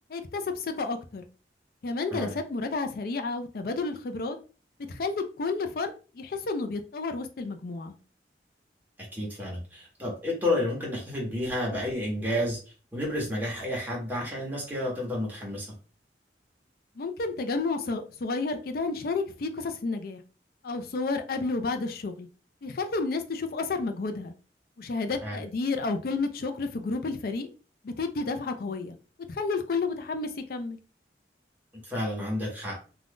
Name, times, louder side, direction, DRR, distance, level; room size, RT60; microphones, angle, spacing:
voice 1, 0.1-1.2 1.8-4.4 4.9-7.9 17.0-20.2 20.6-22.3 22.6-24.3 24.8-27.5 27.8-29.0 29.3-30.8, left 3 dB, 55° left, 7 dB, 0.4 m, -31 dB
voice 2, 9.1-12.6 12.9-15.7 25.2-25.4 31.7-32.8, left 1 dB, 10° right, -3 dB, 1.1 m, -31 dB
2.5 x 2.3 x 3.5 m, 0.36 s
head